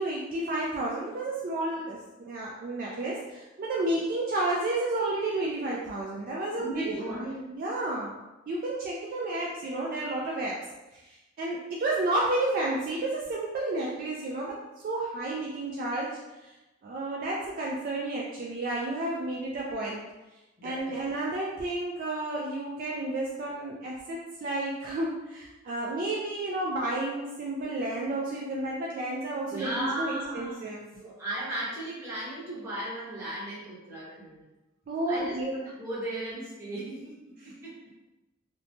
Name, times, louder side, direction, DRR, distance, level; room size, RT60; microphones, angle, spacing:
voice 1, 0.0-8.1 8.5-10.6 10.9-14.6 14.8-16.5 16.8-20.0 20.6-30.8 34.9-35.5 37.4-37.5, right 2 dB, 45° right, -4 dB, 0.3 m, -31 dB
voice 2, 6.6-7.3 20.6-20.9 29.5-30.6 30.9-34.4 35.1-37.8, right 1 dB, 15° right, -10 dB, 1.1 m, -36 dB
3.0 x 2.1 x 2.6 m, 1.0 s
head